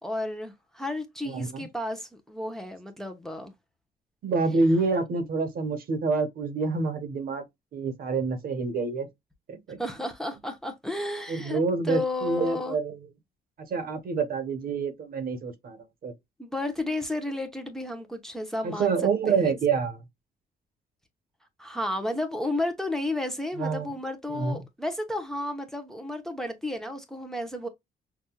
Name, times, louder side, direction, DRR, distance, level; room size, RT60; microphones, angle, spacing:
voice 1, 0.0-3.5 9.8-12.8 16.4-18.9 19.3-19.5 21.6-27.7, left 1 dB, 5° left, 0.8 m, -32 dB
voice 2, 1.3-1.6 4.2-7.5 7.7-9.1 9.5-9.8 11.3-13.0 13.7-15.8 16.0-16.1 18.6-20.0 23.6-23.9 24.3-24.6, right 4 dB, 60° right, 1.2 m, -27 dB
6.0 x 2.6 x 2.3 m
cardioid pair, 140°, 17 cm